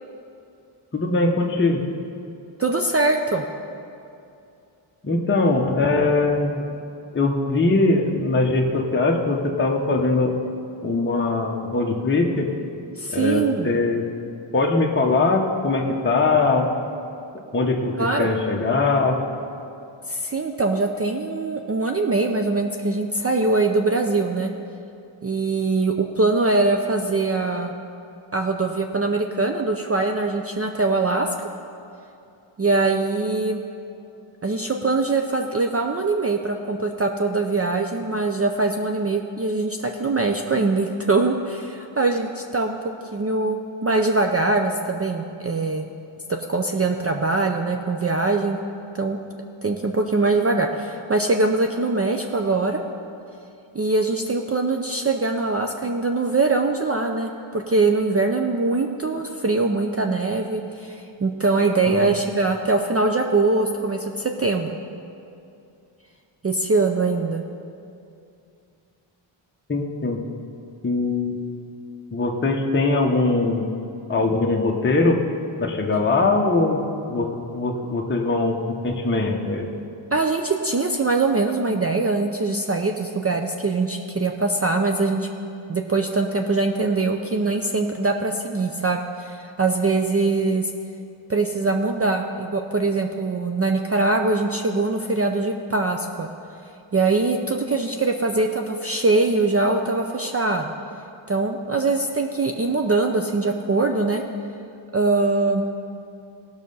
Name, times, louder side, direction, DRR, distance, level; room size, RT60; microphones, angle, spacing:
voice 1, 0.9-1.8 5.0-6.6 7.1-10.3 10.8-12.5 13.1-14.0 14.5-16.7 17.5-19.2 61.9-62.1 69.7-70.2 70.8-71.4 72.1-73.7 74.1-75.2 75.6-76.8 77.1-79.7, left 3 dB, 25° left, 0 dB, 0.9 m, -21 dB
voice 2, 2.6-3.4 13.0-13.7 18.0-18.3 20.1-24.5 25.2-27.7 28.3-31.3 32.6-33.6 34.4-42.8 43.1-45.9 46.3-48.6 48.9-49.2 49.6-52.8 53.7-64.7 66.4-67.4 80.1-85.3 85.7-90.7 91.3-96.3 96.9-100.7 101.3-104.2 104.9-105.7, right 3 dB, 30° right, 3 dB, 0.5 m, -22 dB
17.0 x 6.4 x 5.4 m, 2.6 s
wide cardioid pair, 125°, 50 cm